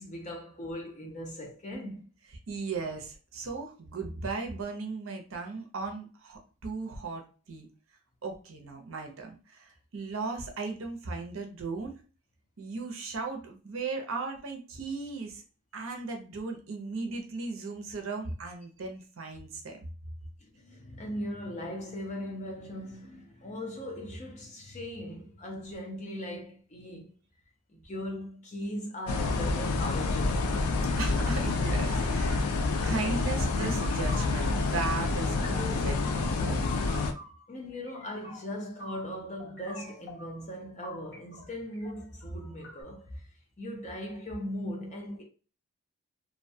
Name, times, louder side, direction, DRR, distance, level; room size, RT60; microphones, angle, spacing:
voice 1, 0.0-2.1 20.4-27.1 27.7-30.7 37.5-43.3 43.6-45.2, equal, 35° left, 0.6 m, -39 dB
voice 2, 2.5-7.7 8.2-12.0 12.6-15.4 15.7-19.9 31.0-32.4 32.8-36.6, right 4 dB, 65° right, 0.6 m, -37 dB
sound 1, 29.1-37.1, left 3 dB, 80° left, 0.4 m, -28 dB
sound 2, 31.4-32.5 32.8-33.3 33.5-34.7 35.0-36.1 36.4-39.1 39.4-40.5 40.8-42.8, left 1 dB, 50° left, 1.0 m, -48 dB
2.5 x 2.2 x 2.6 m
head